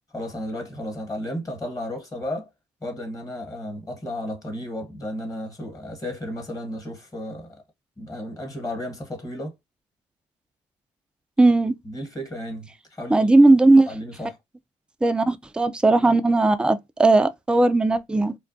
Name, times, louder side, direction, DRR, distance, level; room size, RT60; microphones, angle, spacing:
voice 1, 0.1-2.5 2.8-7.6 8.0-9.5 11.8-13.3 13.9-14.4, left 1 dB, 20° left, 1.1 m, -33 dB
voice 2, 11.4-11.7 13.1-13.9 15.0-18.4, right 2 dB, 5° right, 0.3 m, -17 dB
2.2 x 2.1 x 2.6 m
hypercardioid pair, 50°, 15 cm